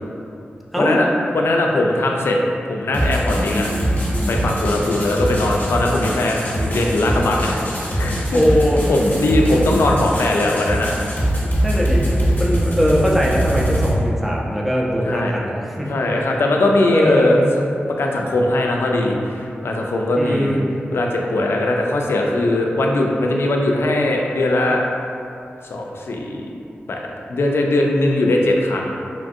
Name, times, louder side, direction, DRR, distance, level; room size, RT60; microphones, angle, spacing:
voice 1, 0.8-1.1 1.3-2.4 2.7-3.7 4.3-8.4 8.9-10.9 15.0-15.3 15.7-17.4 18.0-20.6 20.9-24.8 25.6-26.5 26.9-27.0 27.3-28.9, left 1 dB, 80° left, 0 dB, 0.3 m, -20 dB
sound 1, 2.9-13.9, equal, 50° left, 0.7 m, -22 dB
voice 2, 8.3-8.8 11.6-15.9 16.9-17.4 20.2-20.8, equal, ahead, -4 dB, 0.5 m, -20 dB
3.0 x 2.5 x 2.5 m, 2.6 s
wide cardioid pair, 65°, 4 cm